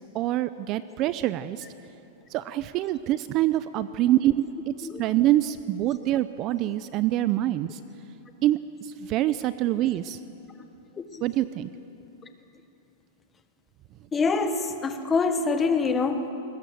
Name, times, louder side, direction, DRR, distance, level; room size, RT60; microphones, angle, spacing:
voice 1, 0.1-1.6 2.3-4.7 5.0-7.8 8.4-8.6 9.1-10.2 11.2-11.7, right 14 dB, 35° right, 14 dB, 0.5 m, -25 dB
voice 2, 14.1-16.3, left 4 dB, 15° left, 8 dB, 1.3 m, -25 dB
22.0 x 20.0 x 7.8 m, 3.0 s
supercardioid pair, 155°, 0 cm